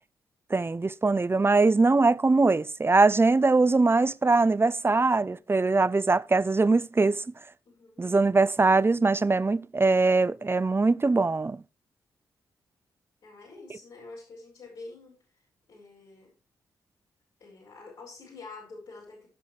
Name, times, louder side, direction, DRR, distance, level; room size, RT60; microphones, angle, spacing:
voice 1, 0.5-7.2 8.0-11.6, right 3 dB, 25° right, 0.7 m, -22 dB
voice 2, 7.6-8.4 13.2-16.3 17.4-19.3, left 3 dB, 75° left, 6.7 m, -47 dB
18.0 x 6.1 x 3.4 m
hypercardioid pair, 45°, 9 cm